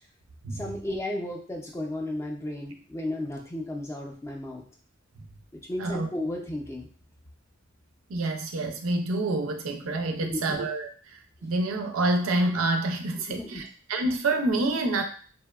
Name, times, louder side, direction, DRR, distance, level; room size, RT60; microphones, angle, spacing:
voice 1, 0.5-4.6 5.5-6.9 10.2-10.6 13.3-13.6, left 1 dB, 15° left, 0 dB, 0.3 m, -34 dB
voice 2, 8.1-10.9 11.4-13.6 13.9-15.0, right 2 dB, 85° right, 5 dB, 0.4 m, -27 dB
2.6 x 2.0 x 2.2 m, 0.42 s
head